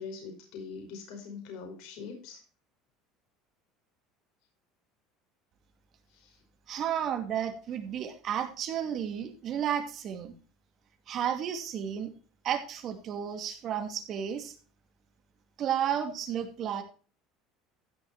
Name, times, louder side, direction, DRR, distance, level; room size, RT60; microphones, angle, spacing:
voice 1, 0.0-2.4 6.1-6.4, left 5 dB, 70° left, 2 dB, 5.3 m, -43 dB
voice 2, 6.7-10.3 11.1-12.1 12.4-14.5 15.6-16.8, right 9 dB, 50° right, 6 dB, 2.5 m, -32 dB
15.5 x 6.6 x 4.2 m, 0.37 s
supercardioid pair, 110°, 0 cm